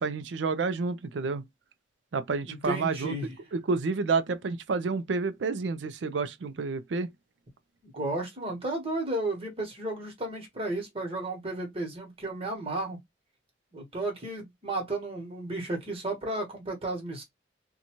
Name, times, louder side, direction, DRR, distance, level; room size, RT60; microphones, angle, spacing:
voice 1, 0.0-1.4 2.1-3.1 3.5-7.1, right 4 dB, 70° right, 0.4 m, -29 dB
voice 2, 2.5-3.3 7.9-13.0 13.7-17.2, right 2 dB, 30° right, 1.1 m, -33 dB
2.6 x 2.3 x 2.9 m
head